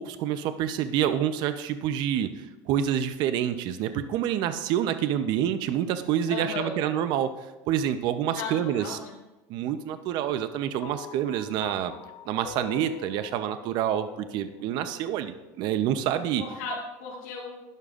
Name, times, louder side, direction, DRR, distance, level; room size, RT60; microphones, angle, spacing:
voice 1, 0.0-7.3 7.7-9.0 9.5-11.9 12.3-16.4, right 10 dB, 55° right, 10 dB, 0.7 m, -27 dB
voice 2, 6.3-6.8 8.3-9.1 16.4-17.5, left 4 dB, 70° left, -7 dB, 2.6 m, -35 dB
sound 1, 10.8-15.3, left 9 dB, 45° left, 0.6 m, -45 dB
12.0 x 11.0 x 2.5 m, 1.0 s
supercardioid pair, 135°, 9 cm